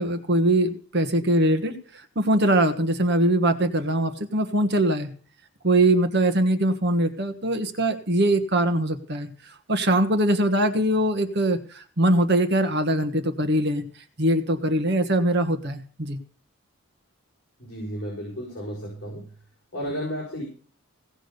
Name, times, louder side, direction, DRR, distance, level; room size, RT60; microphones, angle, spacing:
voice 1, 0.0-5.1 5.6-13.8 14.2-16.2, right 1 dB, 50° right, 7 dB, 1.5 m, -22 dB
voice 2, 17.6-19.3 19.7-20.4, equal, 45° left, -3 dB, 5.5 m, -33 dB
17.5 x 6.3 x 6.7 m, 0.43 s
head